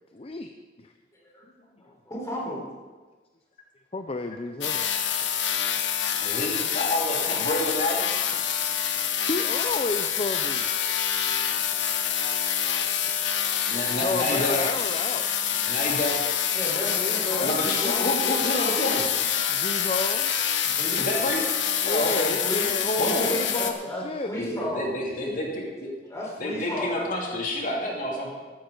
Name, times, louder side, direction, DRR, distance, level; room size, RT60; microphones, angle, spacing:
voice 1, 0.1-0.5 0.8-0.9 3.9-4.9 9.3-10.7 14.0-15.7 17.0-18.2 19.5-20.4 21.8-24.6, left 2 dB, 35° left, 6 dB, 0.6 m, -31 dB
voice 2, 1.1-1.4 1.8-2.7 11.7-13.9 16.5-17.6 20.6-21.1 22.4-25.0 26.1-27.1, equal, 20° left, -4 dB, 4.3 m, -35 dB
sound 1, 4.6-23.7, left 8 dB, 90° left, 1.2 m, -26 dB
voice 3, 6.2-8.1 13.7-14.6 15.7-16.2 17.4-19.1 21.0-21.5 21.8-22.3 23.0-23.3 24.3-25.9 26.4-28.4, left 1 dB, 50° left, -2 dB, 2.8 m, -28 dB
15.0 x 12.5 x 3.9 m, 1.3 s
head